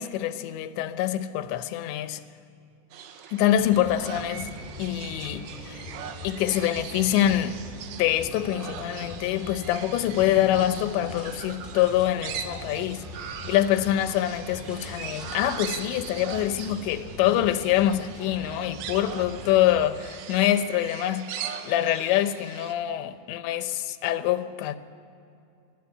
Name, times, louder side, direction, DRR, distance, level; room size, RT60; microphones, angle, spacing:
voice 1, 0.0-2.2 3.3-5.9 6.2-7.6 8.0-24.8, left 12 dB, 90° left, 3.1 m, -25 dB
sound 1, 2.9-22.7, right 8 dB, 80° right, 3.2 m, -40 dB
sound 2, 3.6-20.0, left 1 dB, ahead, 2.0 m, -42 dB
21.5 x 14.0 x 9.6 m
omnidirectional pair, 5.0 m